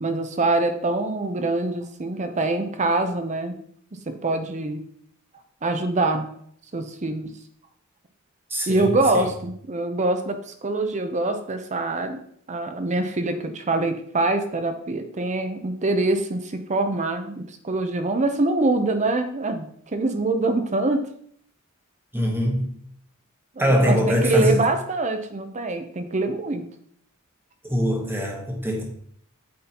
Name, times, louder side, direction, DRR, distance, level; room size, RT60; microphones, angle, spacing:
voice 1, 0.0-3.6 4.1-4.8 5.6-6.3 6.7-7.3 8.7-12.2 12.5-21.1 23.5-26.7, right 2 dB, 35° right, 7 dB, 0.7 m, -24 dB
voice 2, 8.5-9.3 22.1-22.7 23.6-24.7 27.6-28.8, equal, 10° right, 0 dB, 1.1 m, -23 dB
8.5 x 4.3 x 2.8 m, 0.64 s
head